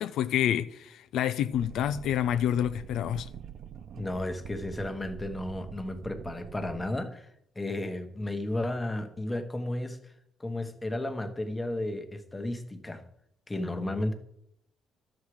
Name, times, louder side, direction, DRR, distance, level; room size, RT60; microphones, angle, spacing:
voice 1, 0.0-3.3, left 10 dB, 75° left, 0.5 m, -28 dB
sound 1, 1.5-6.9, right 9 dB, 55° right, 0.5 m, -45 dB
voice 2, 3.9-7.3 7.5-10.1 10.4-13.0 13.5-14.1, left 1 dB, 10° left, 1.2 m, -33 dB
12.0 x 7.3 x 4.9 m
cardioid pair, 150°, 0 cm